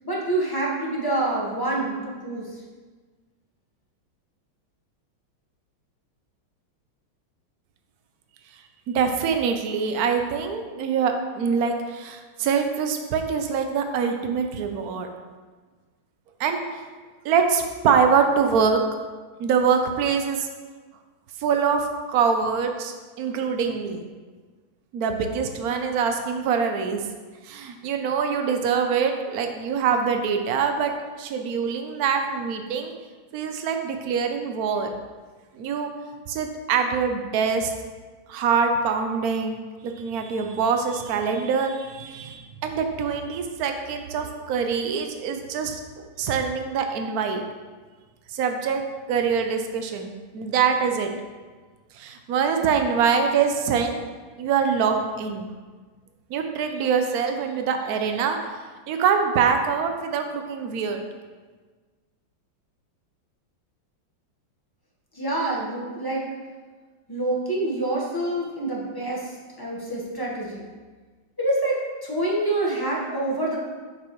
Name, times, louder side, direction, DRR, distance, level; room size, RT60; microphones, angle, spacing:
voice 1, 0.0-2.5 65.1-66.2 67.1-69.3 69.6-70.7 71.4-73.6, right 2 dB, 15° left, -4 dB, 0.9 m, -26 dB
voice 2, 8.9-15.1 16.4-16.9 17.2-18.8 19.4-20.5 21.4-24.1 24.9-27.0 27.4-30.9 31.2-32.9 33.3-34.9 35.5-35.9 36.3-37.7 38.3-47.4 48.3-48.8 49.1-51.1 52.0-54.0 54.4-55.5 56.3-58.4 58.9-61.0, right 6 dB, 65° right, 5 dB, 0.9 m, -24 dB
7.5 x 6.5 x 3.1 m, 1.4 s
omnidirectional pair, 2.2 m